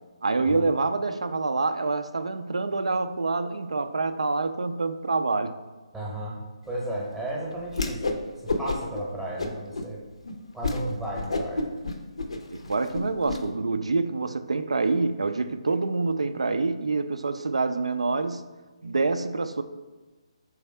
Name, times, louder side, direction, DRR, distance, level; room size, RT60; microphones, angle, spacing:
voice 1, 0.2-5.5 11.2-11.3 12.5-18.4 18.8-19.6, right 3 dB, 75° right, 11 dB, 0.3 m, -26 dB
voice 2, 5.9-6.4 6.7-8.2 8.4-10.0 10.5-11.7, right 1 dB, 5° right, -5 dB, 0.8 m, -34 dB
Whoosh swoosh swish, 7.7-8.2 8.5-9.0 9.4-9.9 10.2-10.3 10.6-10.8 11.1-13.4, left 3 dB, 70° left, 0.5 m, -29 dB
3.5 x 3.3 x 4.3 m, 1.2 s
figure-of-eight pair, 140°, 3 cm